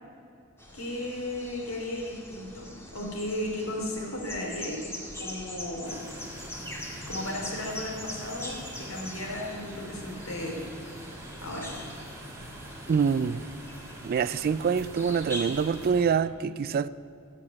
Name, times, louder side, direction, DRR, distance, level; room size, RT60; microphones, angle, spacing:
sound 1, 0.6-15.8, left 1 dB, 10° left, 1.9 m, -43 dB
voice 1, 0.7-4.8 5.2-6.0 7.1-10.6 11.4-11.7, left 1 dB, 70° left, 3.2 m, -35 dB
sound 2, 5.8-16.1, right 1 dB, 15° right, 2.0 m, -44 dB
voice 2, 12.9-13.4 14.0-16.9, right 6 dB, 45° right, 0.3 m, -25 dB
15.5 x 5.9 x 10.0 m
head